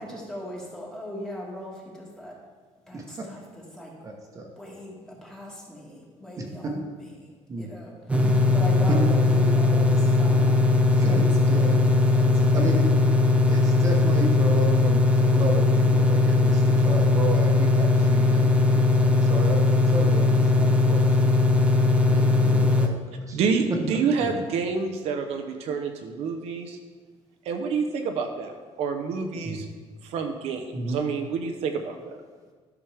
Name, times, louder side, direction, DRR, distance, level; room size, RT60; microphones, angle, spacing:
voice 1, 0.0-2.4 2.9-3.9 4.6-6.8 7.2-7.3 7.6-10.7 11.0-11.8 12.1-12.8, equal, 5° left, -3 dB, 1.7 m, -39 dB
voice 2, 2.9-3.3 4.0-4.5 6.4-6.8 7.5-7.7 8.1-8.3 8.9-9.0 9.4-9.5 10.9-11.9 12.5-12.9 13.5-21.3 22.1-23.0 23.3-23.4 23.7-23.8 24.2-24.3 29.4-29.6 30.7-31.0, right 2 dB, 30° right, 1 dB, 1.1 m, -33 dB
sound 1, 8.1-22.9, left 3 dB, 10° right, 0.6 m, -19 dB
voice 3, 23.3-26.8 27.4-29.7 30.0-32.2, right 5 dB, 65° right, 5 dB, 0.8 m, -28 dB
12.0 x 6.1 x 3.4 m, 1.4 s
cardioid pair, 160°, 11 cm